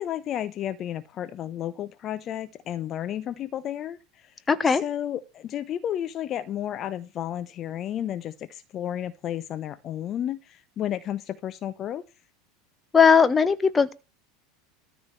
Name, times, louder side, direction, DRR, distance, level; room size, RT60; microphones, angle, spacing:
voice 1, 0.0-4.3 4.7-12.0, left 11 dB, 40° left, 0.9 m, -32 dB
voice 2, 4.5-4.8 12.9-13.9, left 6 dB, 20° left, 1.3 m, -18 dB
13.5 x 5.0 x 8.4 m
hypercardioid pair, 80°, 0 cm